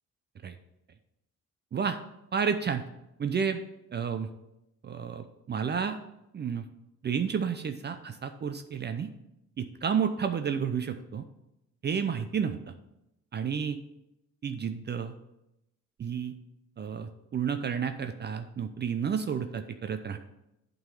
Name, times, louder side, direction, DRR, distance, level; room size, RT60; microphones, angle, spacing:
voice 1, 2.3-2.9 3.2-3.6 3.9-4.3 4.8-6.0 6.3-6.7 7.0-9.1 9.6-11.3 11.8-12.7 13.3-13.8 14.4-15.1 16.0-16.4 16.8-20.2, right 7 dB, 35° right, 8 dB, 0.5 m, -31 dB
8.6 x 3.9 x 5.3 m, 0.88 s
cardioid pair, 90°, 30 cm